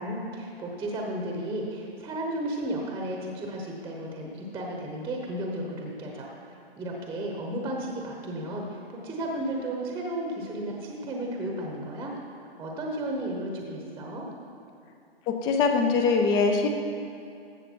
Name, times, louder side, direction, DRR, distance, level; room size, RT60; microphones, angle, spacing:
voice 1, 0.0-12.1 12.6-14.3, right 1 dB, 10° right, 0 dB, 0.9 m, -34 dB
voice 2, 15.3-16.7, left 4 dB, 15° left, 5 dB, 0.4 m, -22 dB
14.5 x 6.7 x 4.5 m, 2.6 s
hypercardioid pair, 140°, 31 cm